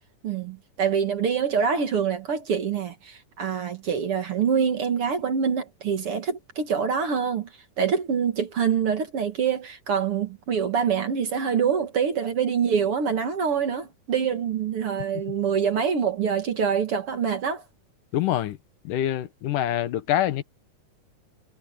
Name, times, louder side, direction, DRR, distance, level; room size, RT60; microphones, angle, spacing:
voice 1, 0.2-7.5 7.8-17.6, right 7 dB, 50° right, 2.2 m, -25 dB
voice 2, 18.1-18.6 18.8-20.4, left 12 dB, 80° left, 2.6 m, -25 dB
omnidirectional pair, 3.7 m